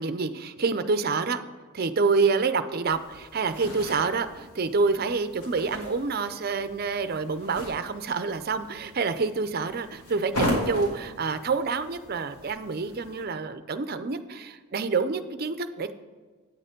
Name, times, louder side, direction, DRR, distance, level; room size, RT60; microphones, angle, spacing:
voice 1, 0.0-1.4 1.7-15.9, right 4 dB, 45° right, 11 dB, 0.5 m, -27 dB
sound 1, 2.9-13.2, left 1 dB, 85° left, 2.8 m, -37 dB
9.4 x 6.7 x 5.2 m, 1.4 s
head